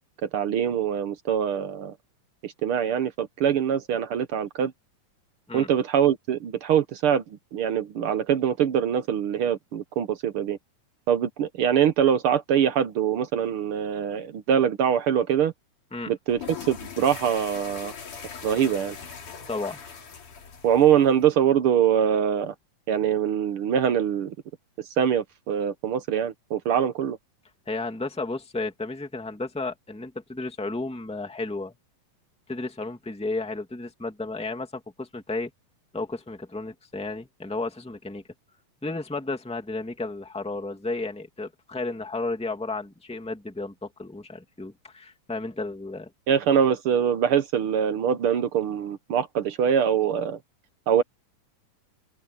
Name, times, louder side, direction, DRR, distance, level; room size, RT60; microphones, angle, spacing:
voice 1, 0.2-1.9 2.4-4.7 5.5-10.6 11.1-15.5 16.1-16.4 16.7-17.9 18.4-19.0 20.6-22.5 22.9-24.3 25.0-27.2 46.3-50.4 50.9-51.0, right 8 dB, 70° right, 1.3 m, -23 dB
sound 1, 16.3-21.3, left 6 dB, 70° left, 5.0 m, -41 dB
voice 2, 19.5-19.8 27.7-31.7 32.5-35.5 35.9-38.2 38.8-46.1, left 3 dB, ahead, 2.0 m, -33 dB
open air
omnidirectional pair, 3.6 m